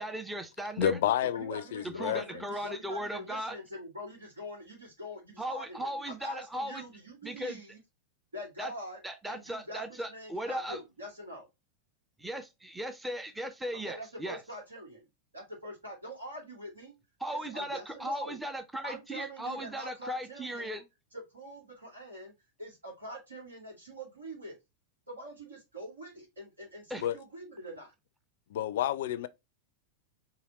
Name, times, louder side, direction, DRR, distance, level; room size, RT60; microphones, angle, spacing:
voice 1, 0.0-1.0 1.8-3.6 5.4-6.8 7.2-7.6 8.6-8.7 9.0-10.8 12.2-14.4 17.2-20.8 26.9-27.0, right 1 dB, 5° right, 0.6 m, -37 dB
voice 2, 0.8-2.4 27.0-27.2 28.5-29.3, left 11 dB, 55° left, 0.4 m, -30 dB
voice 3, 1.3-7.8 8.3-9.0 9.2-11.5 13.8-15.1 15.3-17.0 17.3-18.4 18.8-20.9 21.1-22.3 22.6-24.6 25.1-27.9, equal, 75° right, 2.0 m, -44 dB
4.9 x 2.8 x 2.8 m
figure-of-eight pair, 90°, 0 cm